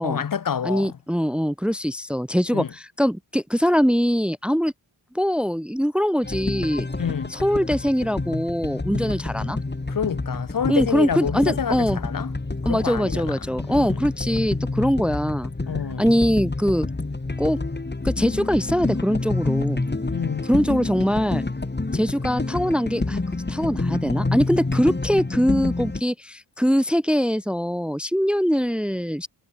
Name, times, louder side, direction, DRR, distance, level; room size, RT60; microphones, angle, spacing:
voice 1, 0.0-1.0 2.5-2.7 7.0-7.3 9.9-12.3 12.6-14.0 15.7-16.1 20.1-20.5, left 7 dB, 45° left, 1.2 m, -28 dB
voice 2, 0.6-4.7 5.1-6.9 7.3-9.6 10.7-12.0 12.6-15.5 16.0-16.9 17.4-17.6 18.0-19.9 20.5-21.4 21.9-23.2 23.5-29.3, equal, ahead, 1.0 m, -22 dB
sound 1, 6.2-26.0, left 3 dB, 20° left, 5.1 m, -28 dB
cardioid pair, 90°, 45 cm